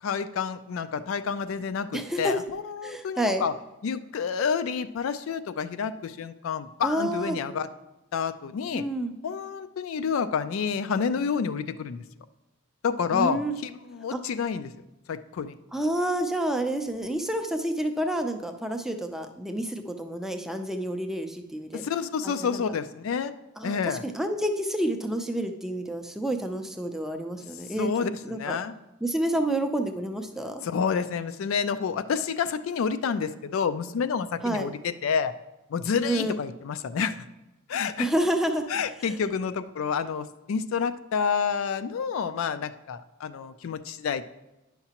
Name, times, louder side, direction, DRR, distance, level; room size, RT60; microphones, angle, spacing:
voice 1, 0.0-3.5 3.8-7.7 8.1-8.8 9.2-12.0 12.8-14.7 15.1-15.6 21.7-23.3 23.6-24.0 27.8-28.1 28.4-28.7 30.6-35.3 35.7-37.2 37.7-38.1 38.7-44.2, left 6 dB, 65° left, 12 dB, 0.3 m, -29 dB
voice 2, 1.9-2.4 2.8-3.5 6.8-7.4 8.7-9.1 13.1-13.5 14.1-14.2 15.7-21.8 22.2-22.6 23.6-28.6 29.0-30.6 34.4-34.7 36.0-36.4 38.0-38.7 39.0-39.2, right 1 dB, ahead, 5 dB, 0.4 m, -29 dB
9.7 x 5.8 x 2.9 m, 1.0 s
head